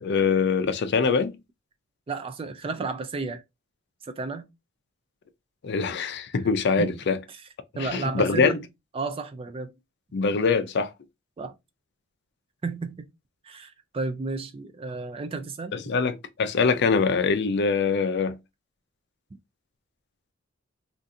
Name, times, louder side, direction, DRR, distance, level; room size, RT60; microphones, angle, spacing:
voice 1, 0.0-1.4 5.6-7.2 7.7-8.6 10.1-10.9 15.7-18.4, left 5 dB, 60° left, 0.4 m, -23 dB
voice 2, 2.1-3.4 4.0-4.5 5.9-6.0 6.8-7.0 7.3-7.4 7.8-8.7 8.9-9.7 11.4-11.5 12.6-13.1 13.4-15.8, right 3 dB, 30° right, 0.3 m, -32 dB
3.6 x 2.5 x 2.6 m
head